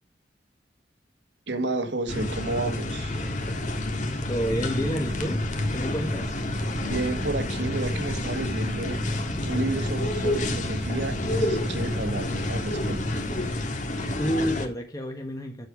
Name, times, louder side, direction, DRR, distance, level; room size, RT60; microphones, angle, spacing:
voice 1, 1.5-3.2 6.8-13.0, right 2 dB, 65° right, 1.8 m, -31 dB
sound 1, 2.1-14.7, left 1 dB, 45° left, 1.9 m, -29 dB
voice 2, 4.3-5.4 5.7-6.4 14.2-15.7, equal, 20° left, 1.4 m, -29 dB
sound 2, 4.4-13.5, equal, 20° right, 1.0 m, -37 dB
8.9 x 8.0 x 4.9 m
head